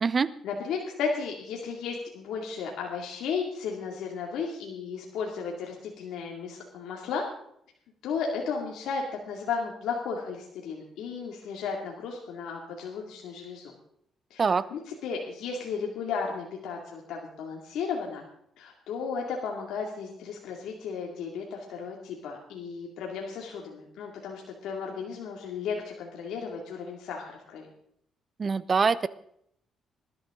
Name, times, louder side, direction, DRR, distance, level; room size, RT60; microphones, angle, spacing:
voice 1, 0.4-7.2 8.0-13.7 14.3-18.2 18.6-27.7, left 5 dB, 85° left, 0 dB, 2.4 m, -34 dB
voice 2, 28.4-29.1, right 5 dB, 40° right, 17 dB, 0.7 m, -24 dB
20.0 x 12.0 x 3.8 m, 0.70 s
cardioid pair, 90°, 0 cm